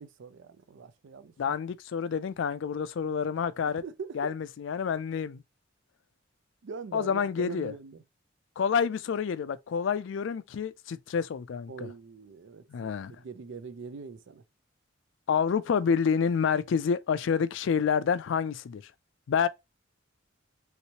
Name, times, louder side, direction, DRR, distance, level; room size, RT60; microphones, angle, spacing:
voice 1, 0.0-1.6 3.8-4.3 6.6-8.0 11.7-14.4, right 5 dB, 65° right, 0.4 m, -42 dB
voice 2, 1.4-3.8 4.1-5.4 6.9-7.7 8.6-11.9 12.7-13.1 15.3-18.8 19.3-19.5, left 6 dB, 65° left, 0.3 m, -28 dB
3.2 x 3.0 x 2.8 m
head